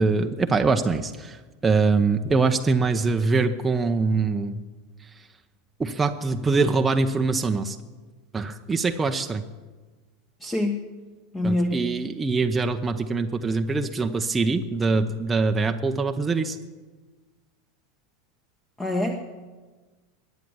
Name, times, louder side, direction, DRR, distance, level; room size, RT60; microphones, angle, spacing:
voice 1, 0.0-4.6 5.8-7.8 8.3-9.4 11.4-16.6, right 4 dB, 15° right, 5 dB, 0.8 m, -23 dB
voice 2, 10.4-10.8 11.3-11.9 18.8-19.2, left 1 dB, 15° left, 4 dB, 1.4 m, -25 dB
21.5 x 9.4 x 7.0 m, 1.3 s
figure-of-eight pair, 85°, 0 cm